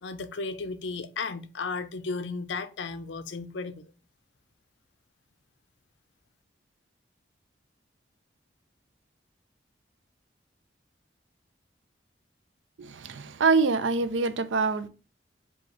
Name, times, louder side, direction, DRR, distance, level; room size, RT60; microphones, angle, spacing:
voice 1, 0.0-3.9, left 4 dB, 80° left, 0.5 m, -34 dB
voice 2, 12.8-14.9, right 4 dB, 85° right, 0.5 m, -25 dB
4.9 x 2.3 x 3.8 m
head